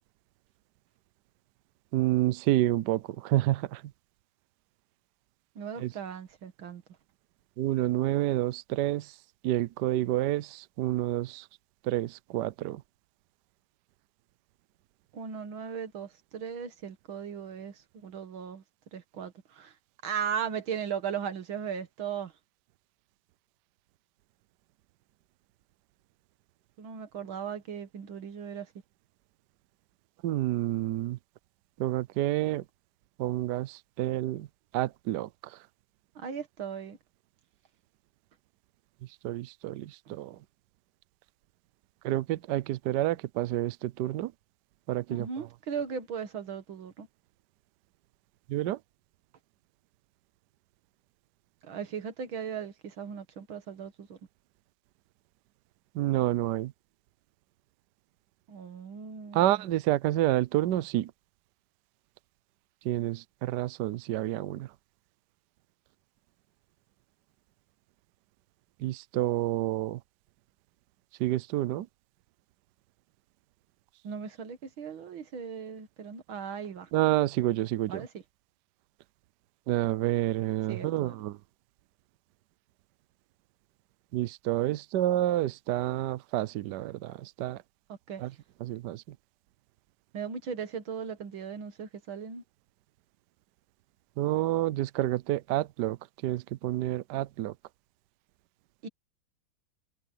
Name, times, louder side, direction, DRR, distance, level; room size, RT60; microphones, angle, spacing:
voice 1, 1.9-3.8 5.8-5.9 7.6-9.1 9.4-11.5 11.8-12.8 30.2-31.2 31.8-32.6 33.2-34.5 34.7-35.6 39.2-40.4 42.0-44.3 44.9-45.3 48.5-48.8 55.9-56.7 59.3-61.1 62.8-64.7 68.8-70.0 71.2-71.9 76.9-78.1 79.7-81.4 84.1-87.6 88.2-88.3 88.6-89.0 94.2-96.0 96.2-97.5, right 15 dB, 70° right, 1.1 m, -29 dB
voice 2, 5.6-6.8 15.1-18.6 18.9-19.7 20.0-22.3 26.8-28.7 36.2-37.0 45.1-47.1 51.7-54.2 58.5-59.7 74.0-76.9 77.9-78.1 80.7-81.2 88.1-88.2 90.1-92.4 98.8-98.9, right 7 dB, 90° right, 2.4 m, -37 dB
omnidirectional pair, 2.1 m